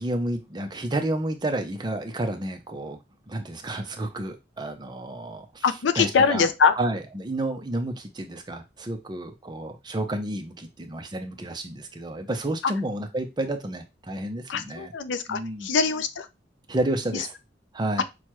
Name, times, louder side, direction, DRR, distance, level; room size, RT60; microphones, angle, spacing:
voice 1, 0.0-3.0 3.3-5.6 6.0-6.5 6.8-14.9 15.3-15.7 16.7-17.3 17.7-18.0, right 1 dB, 25° right, 0.6 m, -30 dB
voice 2, 5.6-6.8 12.6-12.7 14.5-16.3 17.1-17.3 18.0-18.1, left 5 dB, 75° left, 0.4 m, -23 dB
6.2 x 2.2 x 2.9 m
head